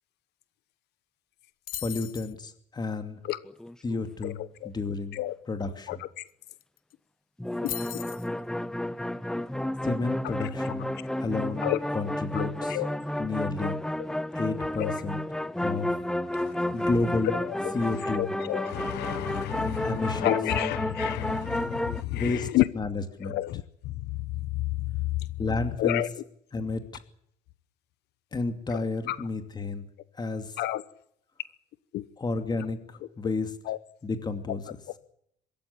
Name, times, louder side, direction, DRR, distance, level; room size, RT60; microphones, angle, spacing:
sound 1, 1.7-2.3 6.3-6.4 6.6-6.9 7.7-8.3, left 12 dB, 60° left, 0.9 m, -37 dB
voice 1, 1.8-3.2 3.8-5.2 5.5-6.0 9.8-10.9 11.2-11.7 11.9-12.8 13.2-13.8 14.3-15.2 15.6-15.9 16.7-17.4 17.7-18.3 19.8-20.3 22.1-22.5 22.7-23.4 25.4-26.0 26.5-26.8 28.3-29.8 30.1-30.5 32.2-32.8 33.2-33.5 34.0-34.6, left 3 dB, 25° left, 2.6 m, -31 dB
sound 2, 3.4-4.0 7.4-22.0, left 1 dB, 5° left, 0.8 m, -31 dB
voice 2, 4.2-4.7 5.1-5.3 5.9-6.2 7.6-7.7 11.6-11.8 12.3-12.9 14.8-14.9 16.3-16.5 17.6-17.8 18.1-22.6 23.2-23.6 24.1-24.2 24.6-25.0 25.8-26.1 28.7-28.8 29.1-29.2 30.6-30.8 31.9-32.0 33.7-33.8, left 16 dB, 80° left, 1.1 m, -30 dB
24.0 x 13.5 x 9.9 m
cardioid pair, 110°, 17 cm